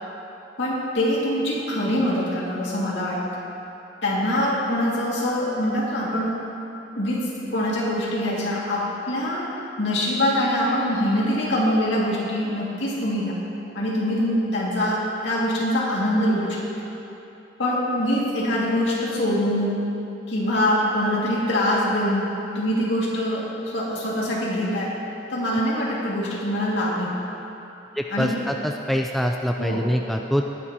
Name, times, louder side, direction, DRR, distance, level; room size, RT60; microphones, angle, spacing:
voice 1, 0.6-3.5 4.0-6.4 7.0-9.5 9.8-13.4 13.7-16.6 17.6-19.8 20.3-25.0 25.3-27.2 28.1-28.4 29.6-29.8, left 1 dB, 70° left, -5 dB, 2.4 m, -24 dB
voice 2, 28.0-30.4, equal, ahead, 2 dB, 0.3 m, -24 dB
18.5 x 10.0 x 3.0 m, 2.9 s
head